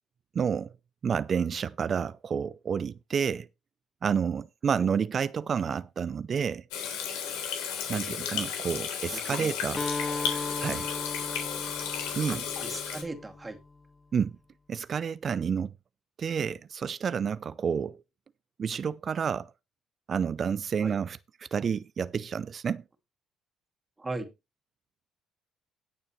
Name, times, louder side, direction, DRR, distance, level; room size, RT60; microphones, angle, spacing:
voice 1, 0.3-0.7 1.0-3.5 4.0-6.6 7.9-9.8 10.6-10.9 12.2-12.4 14.1-14.3 14.7-15.7 16.2-18.0 18.6-19.5 20.1-21.2 21.5-22.8, right 7 dB, 45° right, 0.5 m, -29 dB
Water tap faucet / Sink (filling or washing), 6.7-13.0, left 7 dB, 90° left, 3.7 m, -33 dB
voice 2, 9.1-9.5 12.3-13.6 20.8-20.9 24.0-24.3, right 2 dB, 20° right, 2.4 m, -38 dB
Acoustic guitar, 9.8-13.6, left 3 dB, 20° left, 0.7 m, -37 dB
17.5 x 6.7 x 3.2 m
supercardioid pair, 85°, 0 cm